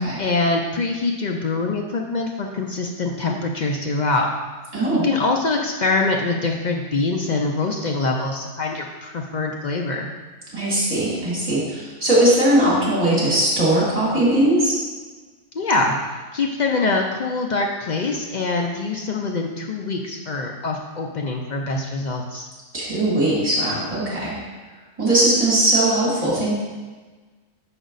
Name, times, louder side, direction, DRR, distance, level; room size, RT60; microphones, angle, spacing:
voice 1, 0.2-4.3 5.0-10.1 15.5-22.5, left 3 dB, 65° left, 1 dB, 0.4 m, -24 dB
voice 2, 4.7-5.1 10.5-14.8 22.7-24.4 25.0-26.5, right 1 dB, 25° right, -7 dB, 2.3 m, -19 dB
6.0 x 5.0 x 3.9 m, 1.3 s
omnidirectional pair, 1.4 m